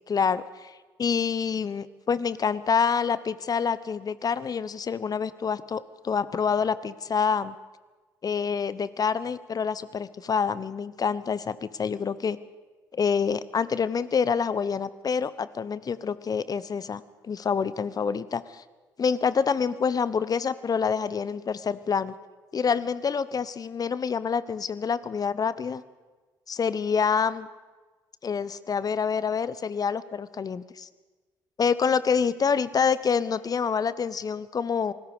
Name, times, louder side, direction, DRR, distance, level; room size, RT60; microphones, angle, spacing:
voice 1, 0.1-7.5 8.2-12.4 12.9-18.6 19.0-22.1 22.5-25.8 26.5-27.5 28.2-30.9 31.6-34.9, left 6 dB, 40° left, 16 dB, 1.1 m, -27 dB
27.5 x 19.5 x 5.1 m, 1.3 s
hypercardioid pair, 50°, 10 cm